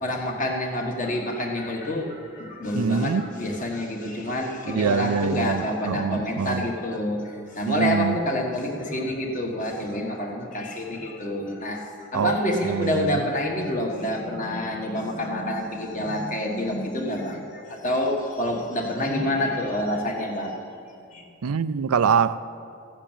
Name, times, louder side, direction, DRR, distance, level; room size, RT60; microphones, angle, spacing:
voice 1, 0.0-20.6 21.1-21.2, left 1 dB, 35° left, 1.7 m, -27 dB
voice 2, 2.7-3.3 4.7-6.7 7.6-8.2 12.1-12.3 12.6-13.2 21.4-22.5, right 6 dB, 90° right, 0.5 m, -24 dB
14.5 x 7.4 x 8.9 m
head